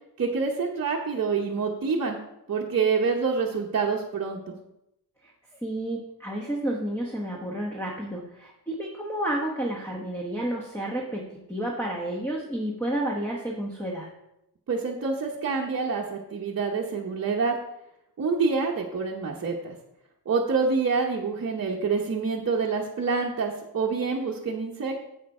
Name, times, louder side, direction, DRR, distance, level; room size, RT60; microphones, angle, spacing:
voice 1, 0.2-2.2 2.5-4.5 14.7-17.5 18.2-19.7 20.3-25.0, right 5 dB, 40° right, -3 dB, 0.9 m, -27 dB
voice 2, 5.6-14.1, right 1 dB, 5° left, -2 dB, 1.0 m, -31 dB
7.9 x 6.5 x 4.7 m, 0.85 s
wide cardioid pair, 170°, 39 cm